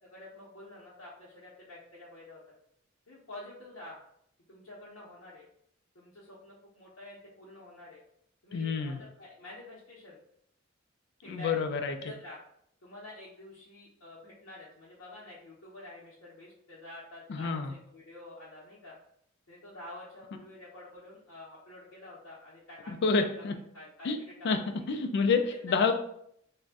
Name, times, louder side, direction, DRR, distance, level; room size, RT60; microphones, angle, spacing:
voice 1, 0.0-2.4 3.1-4.0 4.5-5.5 5.9-8.0 8.4-10.2 11.2-12.4 12.8-19.0 19.5-24.7 25.5-25.9, left 2 dB, 90° left, -7 dB, 0.7 m, -48 dB
voice 2, 8.5-9.0 11.3-11.9 17.3-17.7 22.9-23.5 24.0-24.2 24.4-24.6 24.9-25.9, left 4 dB, 55° left, 6 dB, 0.3 m, -28 dB
2.5 x 2.1 x 3.4 m, 0.71 s
head